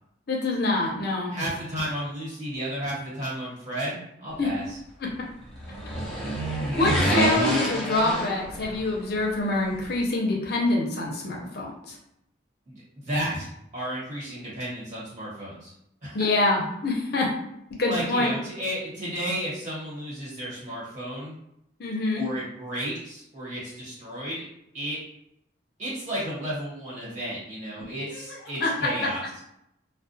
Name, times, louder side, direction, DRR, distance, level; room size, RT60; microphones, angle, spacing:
voice 1, 0.3-1.4 4.4-4.5 6.6-12.0 16.1-17.3 17.8-18.3 21.8-22.3 28.6-28.7, left 2 dB, 60° left, -1 dB, 0.6 m, -25 dB
voice 2, 1.3-4.8 12.7-15.7 16.0-16.3 17.9-21.4 22.2-24.4 24.7-25.0 25.8-29.2, right 1 dB, 40° right, -7 dB, 1.3 m, -33 dB
sound 1, 5.5-9.0 9.2-9.3, right 1 dB, 5° left, 0.6 m, -27 dB
2.3 x 2.1 x 2.6 m, 0.78 s
head